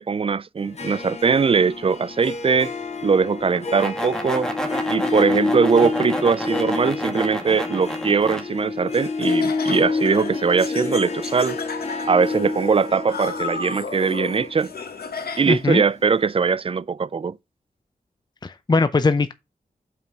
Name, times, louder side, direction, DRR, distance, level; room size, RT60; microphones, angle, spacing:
voice 1, 0.0-2.7 3.0-4.5 4.9-11.6 12.1-14.7 15.4-17.4, right 5 dB, 35° right, 0.4 m, -21 dB
Harp, 0.6-15.9, left 4 dB, 45° left, 1.8 m, -29 dB
sound 1, 3.5-8.4, right 1 dB, 5° left, 1.8 m, -30 dB
Laughter, 8.9-15.7, left 5 dB, 85° left, 1.1 m, -34 dB
voice 2, 15.5-15.8 18.4-19.3, left 3 dB, 30° left, 0.5 m, -20 dB
5.6 x 4.8 x 5.2 m
cardioid pair, 65°, 16 cm